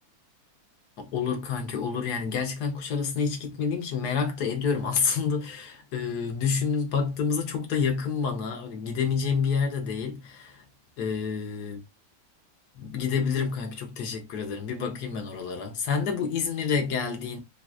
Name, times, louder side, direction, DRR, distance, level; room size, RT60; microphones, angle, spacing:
voice 1, 1.0-10.6 11.0-11.8 12.8-17.4, left 6 dB, 60° left, 1.2 m, -28 dB
3.5 x 3.0 x 2.3 m
omnidirectional pair, 2.2 m